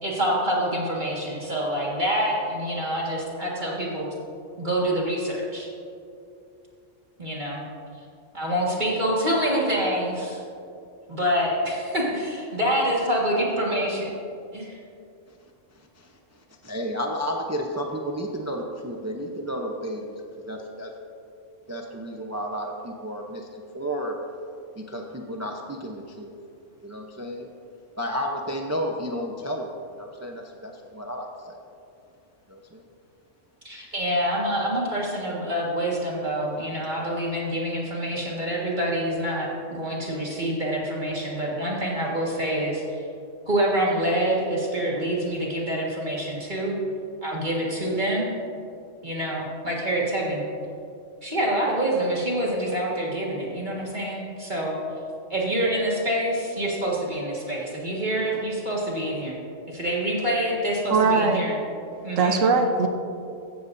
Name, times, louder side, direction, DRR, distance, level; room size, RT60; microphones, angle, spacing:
voice 1, 0.0-4.1 4.6-5.7 7.2-7.6 8.3-10.4 11.1-14.2 14.5-14.8 33.6-43.0 43.5-46.7 47.2-48.3 49.0-50.4 51.2-54.7 55.3-59.4 59.7-61.5 62.0-62.5, right 1 dB, 40° right, -4 dB, 1.9 m, -26 dB
voice 2, 16.6-20.9 21.7-24.2 24.7-26.3 26.8-27.5 28.0-31.6 32.5-32.8, equal, 15° right, 1 dB, 0.7 m, -32 dB
voice 3, 60.9-61.4 62.2-62.9, right 4 dB, 90° right, 4 dB, 1.3 m, -20 dB
15.5 x 14.0 x 2.7 m, 2.6 s
omnidirectional pair, 1.3 m